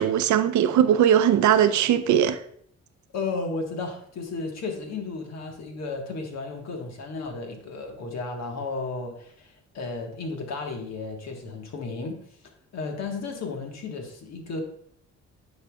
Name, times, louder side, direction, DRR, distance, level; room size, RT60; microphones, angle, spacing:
voice 1, 0.0-2.4, right 9 dB, 70° right, 0.6 m, -20 dB
voice 2, 3.1-12.2 12.7-14.6, left 3 dB, 60° left, 1.5 m, -33 dB
9.7 x 5.6 x 2.3 m
cardioid pair, 90°, 30 cm